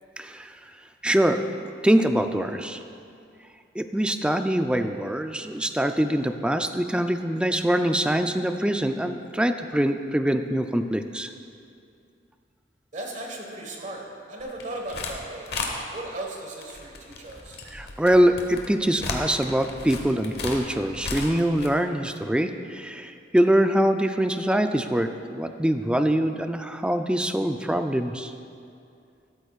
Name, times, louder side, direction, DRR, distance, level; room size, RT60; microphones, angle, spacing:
voice 1, 0.2-0.6 1.0-1.5 1.8-2.8 3.8-11.3 17.7-28.3, right 1 dB, 5° right, 7 dB, 0.3 m, -24 dB
voice 2, 12.9-15.5 15.9-17.6, right 1 dB, 45° right, 1 dB, 1.4 m, -36 dB
sound 1, 14.4-15.2 15.5-15.7 16.6-21.7, left 3 dB, 60° left, 1.1 m, -34 dB
12.5 x 12.0 x 2.4 m, 2.5 s
head